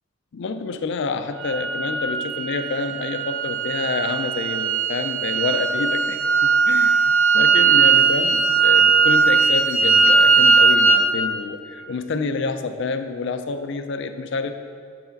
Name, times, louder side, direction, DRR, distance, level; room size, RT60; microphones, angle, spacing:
voice 1, 0.3-14.5, left 4 dB, 55° left, 9 dB, 0.4 m, -28 dB
sound 1, 1.4-11.1, right 5 dB, 70° right, 0.5 m, -18 dB
6.6 x 4.8 x 5.1 m, 2.3 s
head